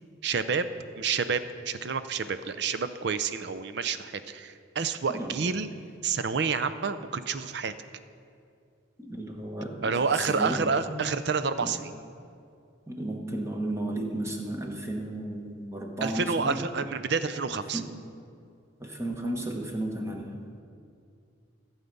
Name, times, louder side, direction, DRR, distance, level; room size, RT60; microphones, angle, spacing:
voice 1, 0.2-0.7 1.0-5.7 6.0-7.7 9.8-11.9 16.0-17.8, right 5 dB, 55° right, 11 dB, 0.5 m, -29 dB
voice 2, 9.0-10.6 10.9-11.1 11.6-11.7 12.9-16.6 17.7-17.9 18.8-20.4, right 1 dB, 15° right, 1 dB, 1.1 m, -34 dB
15.0 x 7.2 x 5.4 m, 2.4 s
head